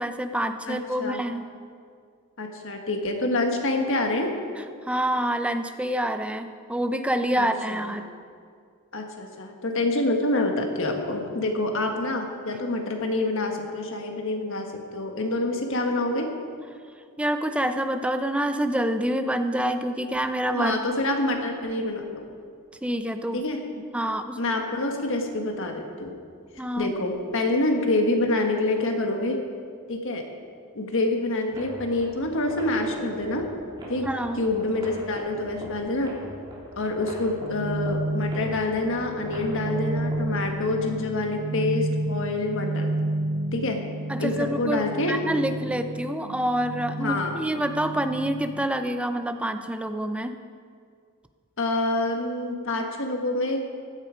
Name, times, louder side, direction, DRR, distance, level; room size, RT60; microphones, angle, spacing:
voice 1, 0.0-1.5 4.6-8.1 17.2-20.8 22.8-23.4 23.9-24.4 26.6-26.9 34.0-34.4 44.1-50.4, right 1 dB, 5° right, 8 dB, 0.6 m, -27 dB
voice 2, 0.7-1.2 2.4-4.3 7.4-7.9 8.9-16.3 20.5-22.3 23.3-23.6 24.4-26.2 26.7-29.4 29.9-30.2 30.7-33.5 33.9-34.1 34.4-36.1 36.8-42.9 43.5-43.8 44.2-45.1 47.0-47.4 51.6-53.7, left 2 dB, 60° left, 3 dB, 1.6 m, -27 dB
sound 1, 31.5-40.5, right 1 dB, 20° right, 3.4 m, -40 dB
sound 2, 37.4-48.7, right 2 dB, 75° right, 0.7 m, -31 dB
15.5 x 10.5 x 5.1 m, 2.2 s
head